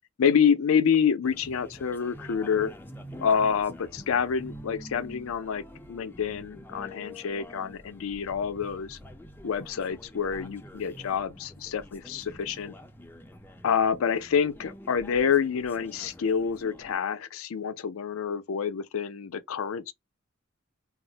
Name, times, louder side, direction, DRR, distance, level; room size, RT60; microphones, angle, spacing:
voice 1, 0.2-2.7 3.2-9.0 9.4-12.7 13.6-19.9, left 7 dB, 80° left, 0.4 m, -27 dB
sound 1, 1.2-17.0, equal, 10° left, 0.4 m, -47 dB
2.4 x 2.0 x 3.7 m
head